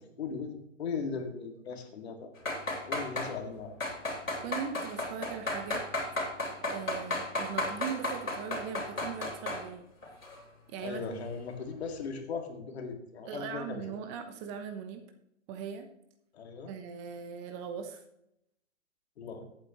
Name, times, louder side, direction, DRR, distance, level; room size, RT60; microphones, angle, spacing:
voice 1, 0.2-2.3 2.8-3.8 10.8-13.8 16.3-16.8 19.2-19.4, left 5 dB, 55° left, 4 dB, 2.3 m, -38 dB
sound 1, 2.4-3.3 3.8-9.6 10.0-10.4 10.8-10.9, left 2 dB, 90° left, 3.3 m, -33 dB
voice 2, 4.4-5.8 6.6-9.9 10.7-11.2 13.2-15.0 15.5-15.9 16.7-18.0, right 7 dB, 25° right, 7 dB, 0.9 m, -39 dB
14.5 x 8.5 x 3.1 m, 0.78 s
hypercardioid pair, 135°, 38 cm